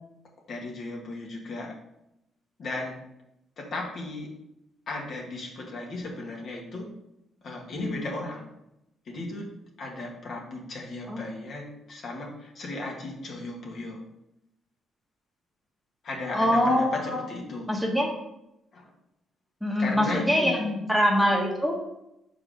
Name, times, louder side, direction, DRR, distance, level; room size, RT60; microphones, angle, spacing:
voice 1, 0.5-1.8 2.6-3.0 3.6-4.3 4.9-6.9 7.4-8.5 9.1-9.5 9.8-14.0 16.0-17.8 18.7-18.9 19.8-20.7, left 2 dB, 55° left, -1 dB, 1.9 m, -35 dB
voice 2, 16.3-17.2 17.7-18.1 19.6-21.8, equal, 5° left, -1 dB, 1.5 m, -24 dB
5.8 x 4.8 x 5.1 m, 0.85 s
cardioid pair, 90°, 0 cm